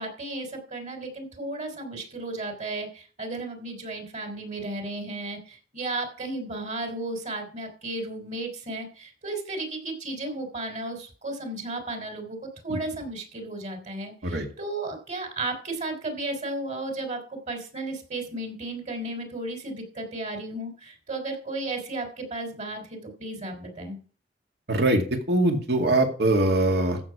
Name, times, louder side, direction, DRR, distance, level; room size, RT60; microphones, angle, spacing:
voice 1, 0.0-24.0, right 2 dB, 45° right, 5 dB, 3.5 m, -34 dB
voice 2, 24.7-27.0, right 1 dB, 65° right, 4 dB, 2.2 m, -22 dB
14.5 x 7.0 x 4.8 m, 0.40 s
head